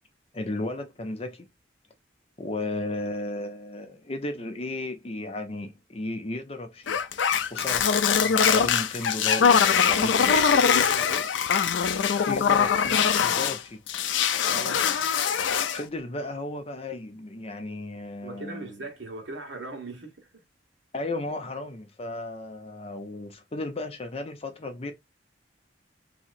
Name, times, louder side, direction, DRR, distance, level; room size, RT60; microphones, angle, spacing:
voice 1, 0.3-1.5 2.4-7.0 7.5-7.9 8.2-10.4 12.3-13.8 15.7-18.8 20.9-24.9, left 2 dB, 35° left, 0.6 m, -34 dB
sound 1, 6.9-13.6 13.9-15.8, left 7 dB, 85° left, 0.4 m, -22 dB
voice 2, 9.9-11.3 14.5-15.0 18.2-20.4, right 3 dB, 80° right, 1.2 m, -39 dB
3.1 x 2.8 x 2.5 m
head